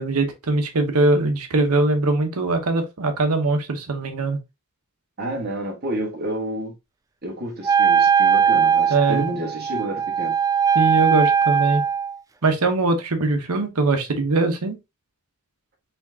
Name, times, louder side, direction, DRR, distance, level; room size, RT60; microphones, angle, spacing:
voice 1, 0.0-4.4 8.9-9.3 10.7-11.8 12.4-14.7, right 3 dB, 80° right, 1.0 m, -21 dB
voice 2, 5.2-6.7 7.2-10.4, right 1 dB, 45° right, 1.5 m, -29 dB
Wind instrument woodwind instrument, 7.6-12.2, right 7 dB, 15° right, 0.3 m, -19 dB
4.4 x 3.5 x 2.7 m
head